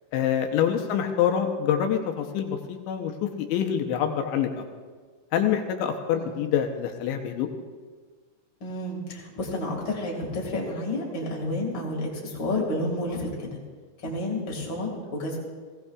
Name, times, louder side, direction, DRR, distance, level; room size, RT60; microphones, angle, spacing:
voice 1, 0.1-4.6 5.3-7.5, left 9 dB, 80° left, 4 dB, 2.8 m, -26 dB
voice 2, 8.6-13.3 14.0-15.4, left 1 dB, 55° left, -2 dB, 1.3 m, -30 dB
20.5 x 17.0 x 2.4 m, 1.5 s
omnidirectional pair, 5.8 m